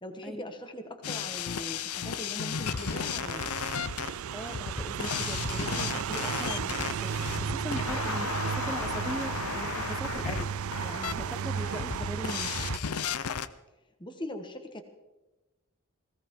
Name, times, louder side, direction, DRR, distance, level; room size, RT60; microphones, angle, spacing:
voice 1, 0.0-3.6 14.0-14.8, left 1 dB, 20° left, 7 dB, 1.4 m, -41 dB
sound 1, 1.0-13.5, left 6 dB, 85° left, 0.7 m, -34 dB
sound 2, 2.7-12.8, right 7 dB, 75° right, 0.4 m, -34 dB
voice 2, 4.3-10.5 10.8-12.6, equal, ahead, 7 dB, 1.1 m, -40 dB
19.5 x 17.0 x 3.8 m, 1.1 s
head